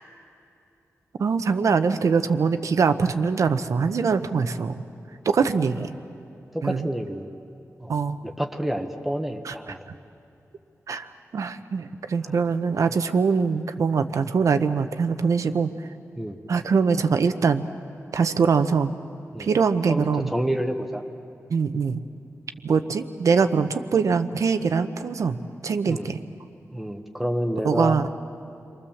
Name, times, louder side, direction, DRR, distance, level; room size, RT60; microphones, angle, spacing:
voice 1, 1.2-4.8 5.2-6.0 6.6-6.9 7.9-8.2 9.4-9.5 10.9-15.9 16.5-17.6 18.1-18.9 19.4-20.3 21.5-22.0 22.6-25.4 25.6-26.2 27.6-28.1, right 5 dB, 70° right, 9 dB, 0.9 m, -23 dB
voice 2, 6.5-7.3 7.8-7.9 8.2-9.8 12.2-12.3 16.1-16.4 19.3-19.5 19.9-21.0 25.8-26.1 26.7-28.0, equal, 5° right, 4 dB, 1.0 m, -28 dB
29.5 x 23.0 x 7.2 m, 2.7 s
wide cardioid pair, 150°, 6 cm